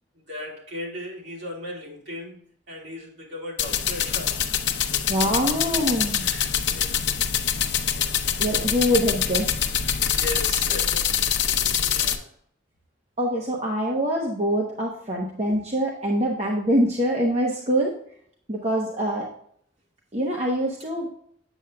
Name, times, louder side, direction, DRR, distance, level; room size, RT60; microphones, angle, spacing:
voice 1, 0.1-2.4 2.7-4.4 4.7-5.3 6.0-7.0 7.9-8.6 9.9-11.6 11.9-12.3, left 1 dB, 65° right, -3 dB, 3.1 m, -38 dB
sound 1, 3.6-12.2, left 8 dB, 65° left, 0.6 m, -24 dB
voice 2, 5.1-6.2 8.4-9.6 11.5-11.7 13.2-17.9 18.5-19.3 20.1-21.1, equal, 35° right, -2 dB, 1.0 m, -24 dB
8.2 x 7.2 x 2.3 m, 0.63 s
head